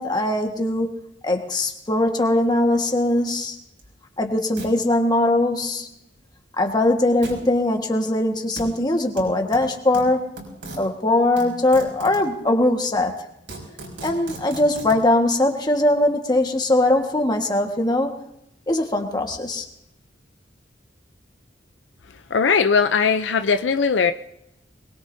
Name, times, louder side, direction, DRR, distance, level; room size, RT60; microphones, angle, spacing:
voice 1, 0.0-3.6 4.2-5.9 6.6-10.3 10.8-13.1 14.0-18.2 18.7-19.6, left 1 dB, 20° left, 3 dB, 1.5 m, -21 dB
sound 1, 3.3-3.4 3.8-3.9 4.6-4.7 7.2-7.4 8.6-8.7 9.2-10.8 11.4-12.3 12.9-13.0 13.3-15.0, right 2 dB, 80° right, 5.6 m, -37 dB
voice 2, 22.3-24.1, left 5 dB, 75° left, 9 dB, 0.6 m, -19 dB
23.0 x 21.0 x 2.7 m, 0.81 s
head